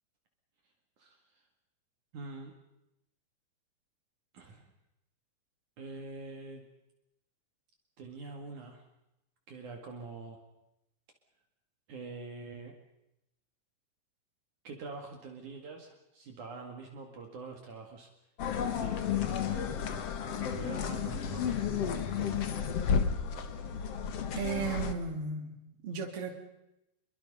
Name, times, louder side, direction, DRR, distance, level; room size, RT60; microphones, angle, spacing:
voice 1, 1.0-1.4 2.1-2.5 4.3-4.7 5.8-6.6 8.0-8.8 9.5-10.4 11.9-12.7 14.6-18.1 18.5-19.1 20.3-22.4, right 4 dB, 55° right, 3 dB, 3.4 m, -45 dB
sound 1, 18.4-25.0, left 7 dB, 55° left, 2.0 m, -32 dB
voice 2, 24.3-26.4, right 5 dB, 40° right, 3 dB, 3.3 m, -35 dB
28.0 x 23.0 x 5.5 m, 0.88 s
omnidirectional pair, 4.3 m